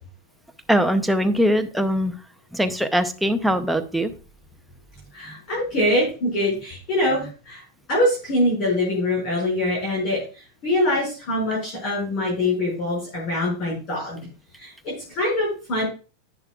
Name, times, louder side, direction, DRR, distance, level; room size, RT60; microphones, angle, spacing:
voice 1, 0.7-2.1 2.5-4.1, equal, ahead, 6 dB, 0.6 m, -21 dB
voice 2, 5.1-7.6 7.9-15.8, left 1 dB, 40° left, -4 dB, 5.9 m, -24 dB
10.5 x 9.8 x 2.4 m, 0.35 s
supercardioid pair, 165°, 0 cm